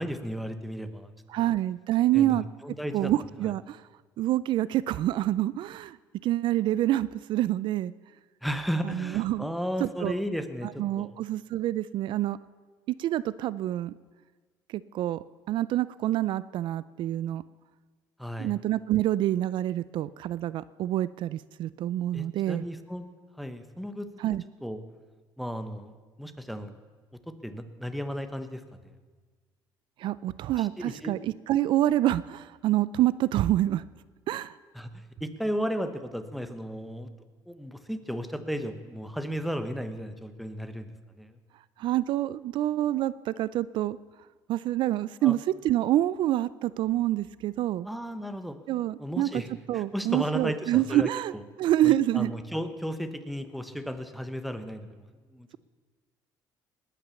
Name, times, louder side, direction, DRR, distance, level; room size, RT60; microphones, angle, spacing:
voice 1, 0.0-1.1 1.4-1.5 2.1-3.1 8.4-11.1 18.2-18.5 22.1-23.1 23.4-24.1 24.6-24.8 25.4-25.9 26.2-26.7 27.4-28.6 30.6-31.1 34.7-37.1 37.5-40.9 41.2-41.4 45.2-45.3 47.8-48.6 49.0-51.4 51.8-54.9 55.3-55.6, equal, ahead, 10 dB, 1.1 m, -34 dB
voice 2, 1.3-2.5 2.9-3.8 4.2-6.0 6.2-7.9 8.8-9.5 9.8-10.1 10.6-12.4 12.9-14.0 14.7-17.4 18.4-22.7 24.2-24.4 30.0-33.8 34.3-34.5 41.8-44.0 44.5-47.9 48.7-49.4 49.7-51.3 51.6-52.3, right 14 dB, 70° right, 18 dB, 0.4 m, -27 dB
19.5 x 9.1 x 7.1 m, 1.4 s
cardioid pair, 105°, 9 cm